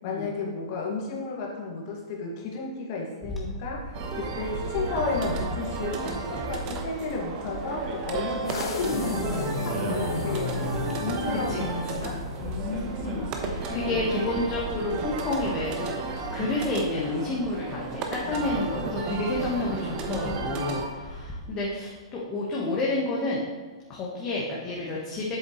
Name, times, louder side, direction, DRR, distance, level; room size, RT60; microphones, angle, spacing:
voice 1, 0.0-10.6 11.0-14.1, left 3 dB, 45° left, -2 dB, 2.0 m, -33 dB
Bird / Wind, 3.2-21.5, equal, 5° right, 1.4 m, -39 dB
sound 1, 3.9-20.9, right 4 dB, 35° right, 1.0 m, -34 dB
sound 2, 8.5-12.7, left 3 dB, 65° left, 1.4 m, -32 dB
voice 2, 13.0-15.9 16.3-23.4 23.9-25.3, left 2 dB, 30° left, -5 dB, 1.4 m, -30 dB
7.9 x 7.2 x 3.2 m, 1.4 s
hypercardioid pair, 115°, 3 cm